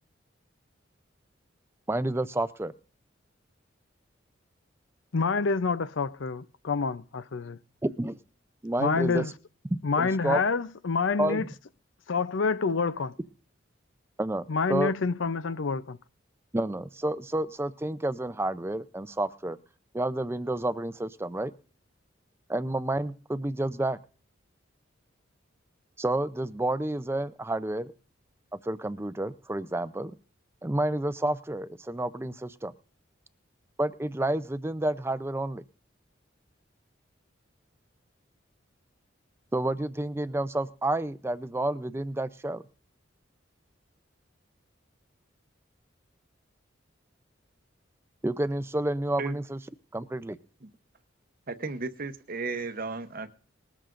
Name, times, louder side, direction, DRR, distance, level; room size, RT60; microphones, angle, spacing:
voice 1, 1.9-2.7 7.8-8.2 8.6-9.3 9.7-10.4 11.2-11.5 14.2-14.9 16.5-19.6 19.9-21.5 22.5-24.0 26.0-27.9 28.6-30.1 30.6-32.7 33.8-35.6 39.5-42.6 48.2-49.6 49.9-50.4, right 1 dB, 15° right, 0.5 m, -30 dB
voice 2, 5.1-7.6 8.8-9.3 9.8-11.5 12.1-13.1 14.5-16.0, left 4 dB, 75° left, 0.6 m, -27 dB
voice 3, 51.5-53.3, right 3 dB, 50° right, 0.9 m, -34 dB
20.0 x 13.5 x 2.5 m
head